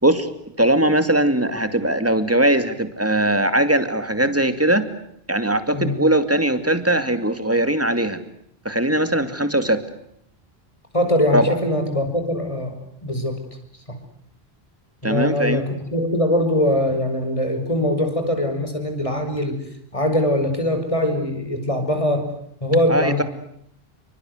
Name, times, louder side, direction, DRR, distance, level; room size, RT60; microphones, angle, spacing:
voice 1, 0.6-4.9 5.3-8.2 8.6-9.8 11.3-11.6 15.0-15.6 22.9-23.2, right 1 dB, 15° right, 10 dB, 2.5 m, -20 dB
voice 2, 10.9-12.7 13.0-13.4 13.9-14.0 15.0-19.6 19.9-22.3 22.6-23.2, left 1 dB, 30° left, 6 dB, 5.9 m, -22 dB
28.5 x 24.5 x 8.0 m, 0.71 s
omnidirectional pair, 1.0 m